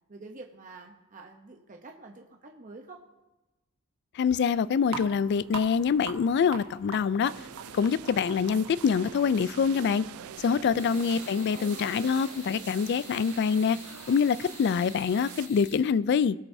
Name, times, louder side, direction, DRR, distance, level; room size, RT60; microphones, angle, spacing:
voice 1, 0.1-3.0 10.7-10.9 11.3-12.0, right 3 dB, 40° right, 0.8 m, -47 dB
voice 2, 4.1-7.3 7.7-10.0 10.4-13.8 14.1-16.4, left 6 dB, 50° left, 0.3 m, -25 dB
sound 1, 4.8-11.0, right 4 dB, 65° right, 1.3 m, -44 dB
sound 2, 7.2-15.5, right 9 dB, 85° right, 0.4 m, -45 dB
sound 3, 10.7-15.8, left 2 dB, 35° left, 3.8 m, -48 dB
20.0 x 7.2 x 2.7 m
head